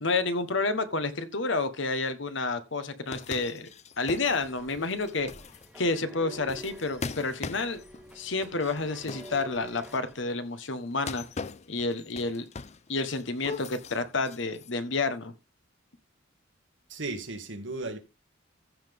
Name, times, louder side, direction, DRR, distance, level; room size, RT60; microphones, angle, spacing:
voice 1, 0.0-3.7 4.0-5.3 5.7-7.8 8.1-11.2 11.7-12.5 12.9-15.3, left 3 dB, 65° left, 1.3 m, -30 dB
sound 1, 3.1-10.1 10.9-12.9 13.2-14.7, left 4 dB, 35° left, 0.5 m, -41 dB
sound 2, 4.2-10.2, equal, 5° right, 1.0 m, -48 dB
voice 2, 16.9-18.0, right 2 dB, 65° right, 2.1 m, -35 dB
15.0 x 5.7 x 3.6 m
head